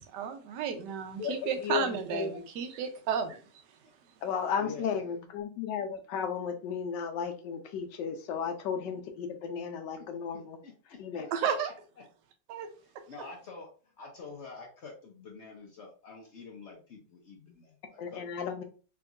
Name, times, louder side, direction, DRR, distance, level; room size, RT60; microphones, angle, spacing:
voice 1, 0.1-3.4 11.3-11.7 12.5-12.7, right 7 dB, 80° right, 6 dB, 1.2 m, -32 dB
voice 2, 1.2-2.5 4.2-10.6 11.0-11.3 18.0-18.6, left 7 dB, 90° left, 6 dB, 1.3 m, -34 dB
voice 3, 4.6-5.2 10.0-10.1 10.3-11.3 12.8-13.7 14.0-18.5, left 4 dB, 60° left, 0 dB, 0.7 m, -48 dB
3.5 x 2.9 x 2.3 m, 0.38 s
omnidirectional pair, 1.8 m